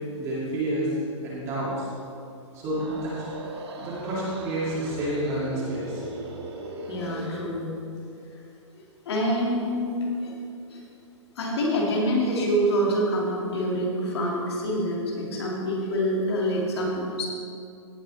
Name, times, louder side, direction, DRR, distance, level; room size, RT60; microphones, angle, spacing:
voice 1, 0.2-0.9 1.2-1.9 2.5-3.2 3.8-6.0, right 1 dB, 20° right, -7 dB, 2.3 m, -29 dB
sound 1, 2.6-7.5, right 2 dB, 55° right, 1.6 m, -39 dB
voice 2, 6.9-7.7 9.1-10.3 10.7-10.8 11.4-17.3, equal, 55° left, -2 dB, 2.5 m, -26 dB
17.0 x 6.0 x 4.2 m, 2.6 s
hypercardioid pair, 170°, 16 cm